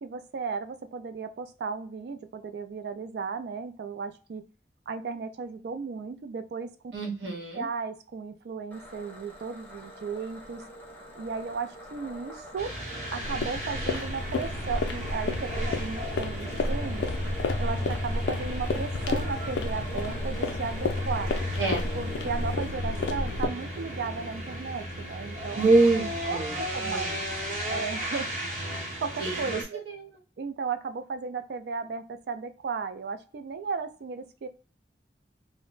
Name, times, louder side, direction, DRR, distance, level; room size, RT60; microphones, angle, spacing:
voice 1, 0.0-4.4 4.9-6.9 7.5-10.6 11.1-12.7 13.1-17.1 17.6-21.3 21.9-25.6 26.3-27.2 27.6-28.3 29.0-29.8 30.4-34.5, right 5 dB, 65° right, 8 dB, 0.3 m, -35 dB
voice 2, 6.9-7.7 21.6-21.8 25.6-26.6 26.8-27.1 29.2-30.0, right 2 dB, 80° right, 0 dB, 0.9 m, -25 dB
sound 1, 8.7-22.7, right 1 dB, 10° left, 0.5 m, -45 dB
sound 2, 12.6-29.6, right 1 dB, 45° right, 0.8 m, -36 dB
sound 3, 13.2-23.5, left 2 dB, 90° left, 0.4 m, -31 dB
2.0 x 2.0 x 3.7 m, 0.37 s
head